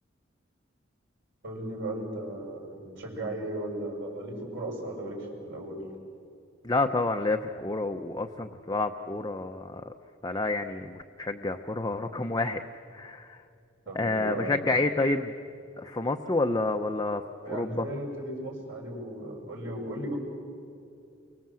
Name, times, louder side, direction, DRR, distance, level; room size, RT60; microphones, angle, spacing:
voice 1, 1.4-5.8 13.9-14.7 17.4-20.2, right 1 dB, 70° right, -1 dB, 7.1 m, -36 dB
voice 2, 6.6-9.9 10.2-12.6 12.9-13.4 13.9-15.3 15.8-17.2 17.5-17.9, left 2 dB, 20° left, 5 dB, 0.8 m, -29 dB
29.5 x 24.5 x 7.6 m, 2.5 s
head